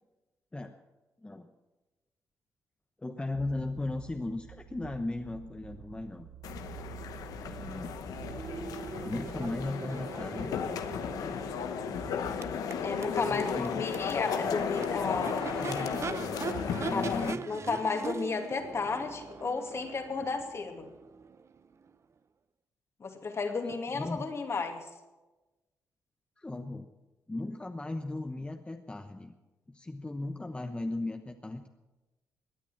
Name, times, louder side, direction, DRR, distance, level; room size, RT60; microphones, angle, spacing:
voice 1, 3.0-6.3 7.4-7.9 9.0-10.5 13.1-13.9 15.2-16.4 16.7-17.8 20.2-20.3 23.7-24.2 26.4-26.9 27.3-29.3 29.7-31.7, left 2 dB, 15° left, 6 dB, 1.0 m, -37 dB
sound 1, 3.3-9.7, right 9 dB, 90° right, 0.9 m, -48 dB
sound 2, 6.4-17.3, left 7 dB, 85° left, 1.0 m, -35 dB
Crowd / Race car auto racing / Accelerating revving vroom, 8.1-21.9, right 5 dB, 50° right, 0.8 m, -41 dB
voice 2, 12.8-15.6 16.9-17.1 17.5-20.9 23.0-24.9, left 4 dB, 45° left, 4 dB, 2.5 m, -33 dB
17.5 x 9.8 x 7.3 m, 1.1 s
cardioid pair, 70°, 6 cm